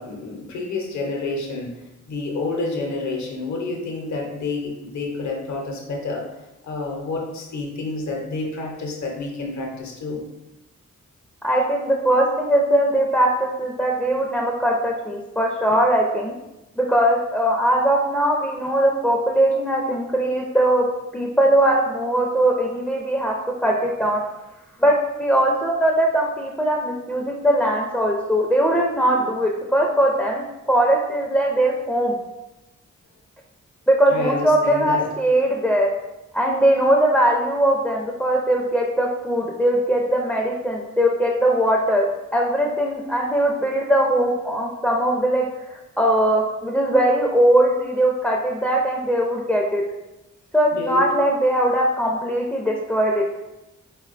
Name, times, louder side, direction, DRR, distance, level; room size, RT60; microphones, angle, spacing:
voice 1, 0.0-1.7 2.1-6.2 6.6-10.2 34.1-35.1 50.7-51.1, left 3 dB, 65° left, 0 dB, 0.7 m, -29 dB
voice 2, 11.4-16.3 16.8-20.9 21.1-23.3 23.6-24.2 24.8-32.1 33.9-35.9 36.3-45.4 45.7-49.8 50.5-53.2, right 1 dB, 5° left, -1 dB, 0.4 m, -20 dB
3.6 x 2.2 x 2.4 m, 0.97 s
cardioid pair, 45°, 31 cm